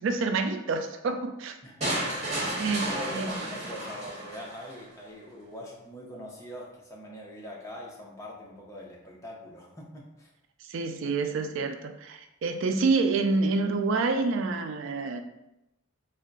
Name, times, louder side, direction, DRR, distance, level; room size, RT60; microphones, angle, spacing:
voice 1, 0.0-1.6 2.6-3.4 10.6-15.2, right 3 dB, 75° right, 6 dB, 0.3 m, -28 dB
voice 2, 1.6-2.2 2.9-10.3, left 1 dB, 15° left, -3 dB, 0.6 m, -43 dB
sound 1, 1.8-4.8, right 1 dB, 35° right, 1.2 m, -32 dB
3.6 x 2.2 x 3.9 m, 0.88 s
head